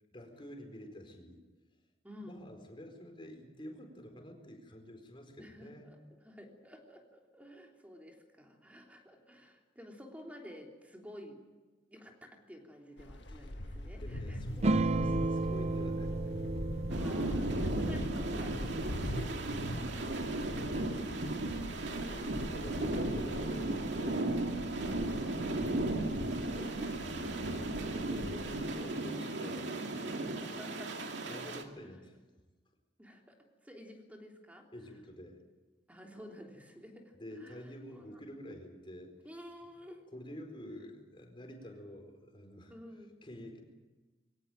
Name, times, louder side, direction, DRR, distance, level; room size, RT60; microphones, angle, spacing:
voice 1, 0.1-1.4 2.2-5.9 13.3-13.5 14.0-16.4 22.0-24.3 24.9-29.7 31.3-32.2 34.7-35.4 37.1-39.1 40.1-42.7 43.2-43.6, equal, 30° left, 4 dB, 4.5 m, -49 dB
voice 2, 2.0-2.4 5.4-11.4 11.9-14.4 16.9-22.0 24.7-25.2 29.9-31.1 31.8-31.9 33.0-34.7 35.9-38.2 39.3-40.0 42.7-43.2, equal, 10° right, 1 dB, 3.3 m, -52 dB
sound 1, 13.0-28.8, left 1 dB, 80° left, 1.6 m, -42 dB
sound 2, 14.6-19.5, right 2 dB, 35° right, 0.6 m, -34 dB
sound 3, 16.9-31.6, right 2 dB, 80° right, 2.4 m, -36 dB
22.5 x 17.5 x 9.0 m, 1.3 s
head